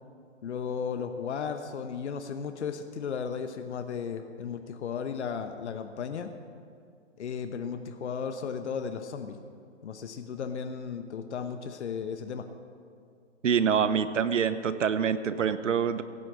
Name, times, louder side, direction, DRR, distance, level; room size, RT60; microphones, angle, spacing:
voice 1, 0.4-6.3 7.2-9.4 9.8-12.4, left 6 dB, 65° left, 7 dB, 1.0 m, -35 dB
voice 2, 13.4-16.0, right 7 dB, 90° right, 13 dB, 0.9 m, -26 dB
16.5 x 6.4 x 8.4 m, 2.3 s
hypercardioid pair, 160°, 36 cm